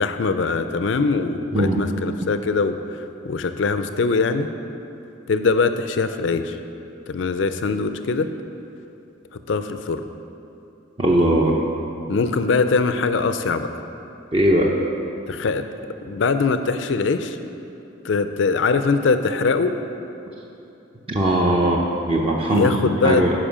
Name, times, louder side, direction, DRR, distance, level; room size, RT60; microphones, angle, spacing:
voice 1, 0.0-4.5 5.3-6.6 7.1-8.3 9.3-10.0 12.1-13.7 15.3-15.7 16.0-17.4 18.0-19.7 22.5-23.4, left 4 dB, 70° left, 9 dB, 0.4 m, -22 dB
voice 2, 11.0-11.6 14.3-14.7 21.1-22.7 23.0-23.4, right 1 dB, 30° right, -2 dB, 0.6 m, -19 dB
10.5 x 5.2 x 5.0 m, 2.9 s
head